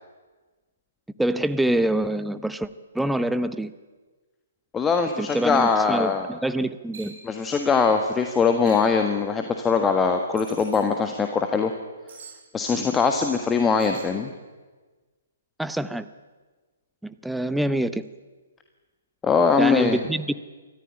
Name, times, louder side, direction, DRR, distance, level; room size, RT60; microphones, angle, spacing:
voice 1, 1.2-2.7 2.9-3.7 5.2-7.2 15.6-16.1 17.0-18.0 19.6-20.4, right 1 dB, 5° right, 13 dB, 0.8 m, -25 dB
voice 2, 4.7-6.3 7.2-11.7 12.5-14.3 19.2-20.0, left 5 dB, 15° left, 6 dB, 1.5 m, -22 dB
sound 1, 6.9-7.2 8.7-9.0 10.4-10.8 12.1-12.4 13.8-14.1, right 5 dB, 60° right, 7.3 m, -44 dB
24.0 x 14.5 x 10.0 m, 1.3 s
hypercardioid pair, 135°, 0 cm